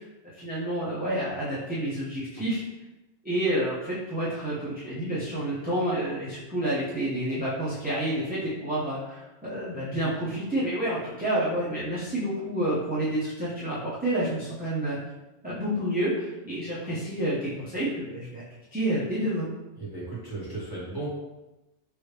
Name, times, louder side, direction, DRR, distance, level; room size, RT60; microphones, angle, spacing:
voice 1, 0.4-2.6 3.2-15.0 15.4-18.4 18.7-19.5, right 1 dB, 10° right, -10 dB, 0.6 m, -29 dB
voice 2, 19.8-21.1, right 2 dB, 20° left, -9 dB, 1.3 m, -35 dB
3.1 x 2.7 x 3.2 m, 1.0 s
omnidirectional pair, 1.1 m